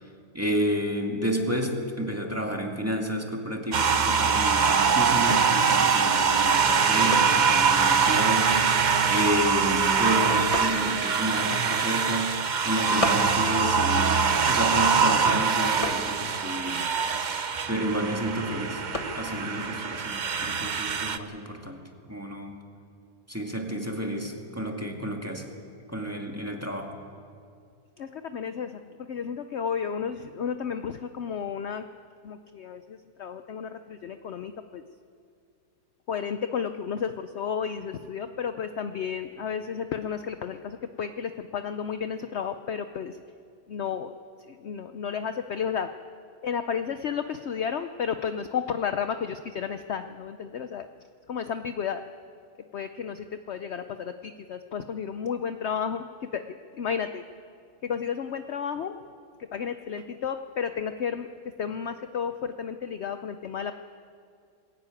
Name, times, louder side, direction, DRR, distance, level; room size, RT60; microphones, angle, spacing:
voice 1, 0.3-8.5 9.1-12.4 12.6-16.9 17.7-18.8 19.1-21.8 22.1-22.6 23.3-25.5 25.9-27.0, equal, 10° right, 1 dB, 2.0 m, -30 dB
sound 1, 3.7-21.2, right 5 dB, 45° right, 0.6 m, -23 dB
sound 2, 5.6-21.1, left 1 dB, 20° left, 1.2 m, -40 dB
voice 2, 28.0-31.8 32.2-34.8 36.1-43.2 43.7-44.1 44.4-45.9 46.4-50.9 51.3-52.0 52.7-57.2 57.8-59.0 59.4-61.3 61.6-63.7, left 7 dB, 55° left, 9 dB, 0.8 m, -32 dB
21.5 x 16.5 x 9.1 m, 2.3 s
omnidirectional pair, 1.7 m